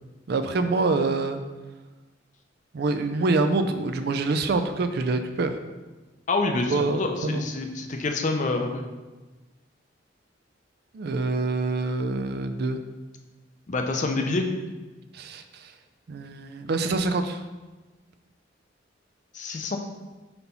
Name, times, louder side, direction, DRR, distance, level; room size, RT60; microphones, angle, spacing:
voice 1, 0.3-1.4 2.7-5.6 6.7-7.4 10.9-12.8 15.1-15.7 16.1-17.4, right 3 dB, 55° right, 8 dB, 0.4 m, -26 dB
voice 2, 6.3-8.8 13.7-14.5 19.3-19.8, left 3 dB, 40° left, 4 dB, 0.6 m, -27 dB
4.3 x 4.1 x 5.4 m, 1.2 s
head